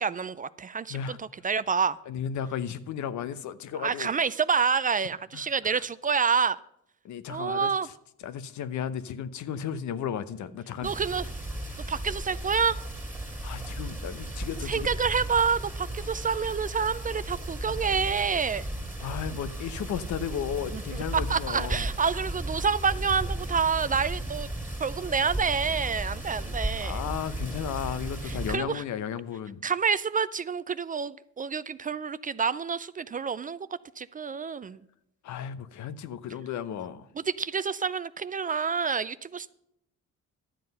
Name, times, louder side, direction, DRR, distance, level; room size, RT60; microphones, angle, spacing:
voice 1, 0.0-2.0 3.8-6.6 7.3-7.9 10.8-11.3 11.9-12.8 14.7-18.7 20.7-20.8 21.3-24.5 24.8-27.0 28.2-28.8 29.6-33.6 34.0-34.8 37.3-39.5, right 6 dB, 30° right, 0.4 m, -28 dB
voice 2, 2.1-4.1 5.3-5.8 7.0-7.9 8.2-10.9 13.4-14.9 19.0-21.9 26.8-29.6 35.2-37.1, left 8 dB, 70° left, 0.8 m, -34 dB
sound 1, 10.8-28.6, right 1 dB, 5° right, 2.3 m, -35 dB
11.5 x 7.7 x 5.4 m
cardioid pair, 90°, 30 cm